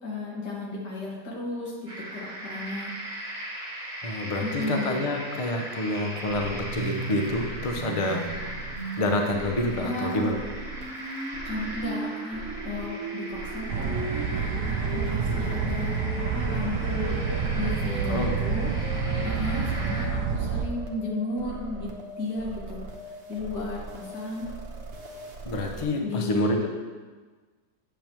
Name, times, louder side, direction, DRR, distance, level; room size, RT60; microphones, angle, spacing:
voice 1, 0.0-2.9 4.4-5.0 9.8-10.2 11.4-17.2 17.5-21.9 22.2-22.8 23.3-24.5 26.0-26.7, left 2 dB, 85° left, -4 dB, 2.3 m, -34 dB
sound 1, 1.9-20.1, right 1 dB, 30° right, 1.4 m, -39 dB
voice 2, 4.0-10.4 18.1-18.3 19.1-19.3 25.4-26.7, left 1 dB, 50° left, 3 dB, 0.4 m, -28 dB
sound 2, 6.3-25.8, right 3 dB, 50° right, 1.1 m, -38 dB
sound 3, 13.7-20.7, right 5 dB, 85° right, 1.2 m, -28 dB
9.2 x 7.0 x 3.0 m, 1.4 s
omnidirectional pair, 1.8 m